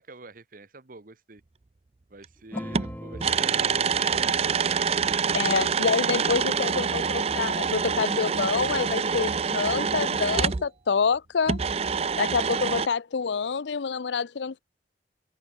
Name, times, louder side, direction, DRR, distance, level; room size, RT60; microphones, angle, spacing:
voice 1, 0.0-1.4 2.1-5.0 6.0-6.9, right 3 dB, 50° right, 1.2 m, -46 dB
sound 1, 2.2-2.3 2.7-10.7 11.5-12.9, right 6 dB, 35° right, 0.5 m, -26 dB
sound 2, 2.5-7.4, equal, 10° left, 1.0 m, -43 dB
voice 2, 5.3-11.6 12.2-14.6, left 5 dB, 80° left, 0.6 m, -27 dB
head